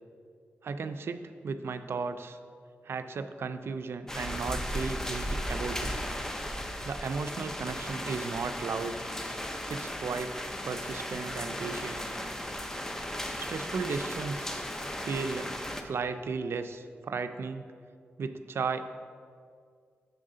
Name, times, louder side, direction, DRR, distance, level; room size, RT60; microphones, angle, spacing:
voice 1, 0.6-2.4 2.8-5.9 6.8-9.0 9.7-12.0 13.4-14.5 15.0-15.5 15.8-17.6 18.2-18.8, right 4 dB, 70° right, 9 dB, 0.4 m, -35 dB
sound 1, 4.1-15.8, equal, 10° left, 0.5 m, -36 dB
6.8 x 6.5 x 3.7 m, 2.2 s
wide cardioid pair, 95°, 4 cm